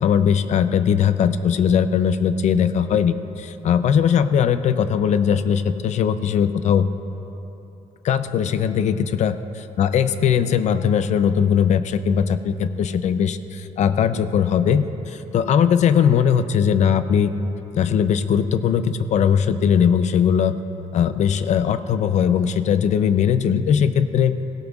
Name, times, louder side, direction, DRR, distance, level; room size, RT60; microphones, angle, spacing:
voice 1, 0.0-6.9 8.0-9.4 9.8-17.3 17.7-20.6 20.9-24.4, left 8 dB, 60° left, 12 dB, 0.5 m, -19 dB
17.5 x 16.5 x 2.4 m, 3.0 s
cardioid pair, 130°, 13 cm